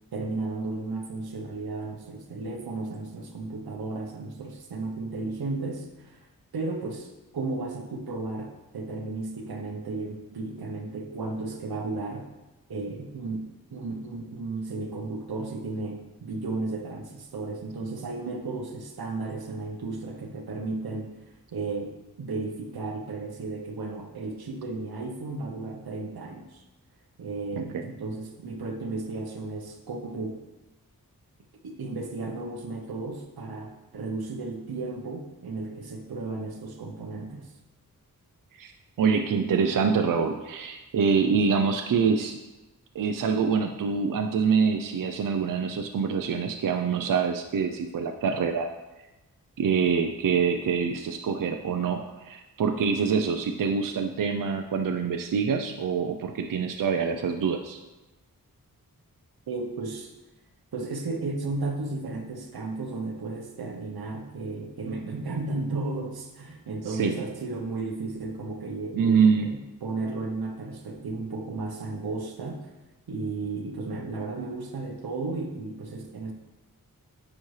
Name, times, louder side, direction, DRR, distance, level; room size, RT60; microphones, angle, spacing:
voice 1, 0.1-6.2 6.5-12.3 12.7-21.2 21.5-26.6 27.2-30.4 31.6-37.5 59.5-60.1 60.7-72.7 73.1-76.3, right 3 dB, 85° right, 4 dB, 0.9 m, -34 dB
voice 2, 27.6-27.9 38.6-38.7 39.0-42.4 42.9-48.7 49.6-57.8 66.9-67.2 68.9-69.5, right 6 dB, 65° right, 5 dB, 0.5 m, -25 dB
9.3 x 4.3 x 3.2 m, 1.1 s
wide cardioid pair, 85°, 36 cm